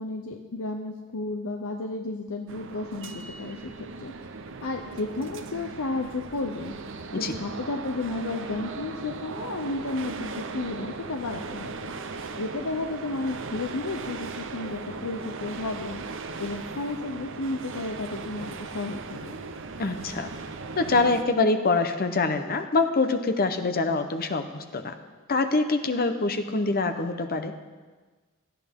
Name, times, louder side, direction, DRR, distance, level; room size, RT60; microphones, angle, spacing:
voice 1, 0.0-4.1 4.6-6.7 7.1-11.9 12.4-16.0 16.4-19.4, left 2 dB, 75° left, 4 dB, 0.7 m, -33 dB
sound 1, 2.5-21.2, right 4 dB, 60° right, 0.8 m, -38 dB
voice 2, 19.8-20.3 20.8-24.9 25.3-27.5, left 3 dB, 45° left, 8 dB, 0.8 m, -25 dB
17.5 x 12.5 x 3.7 m, 1.3 s
head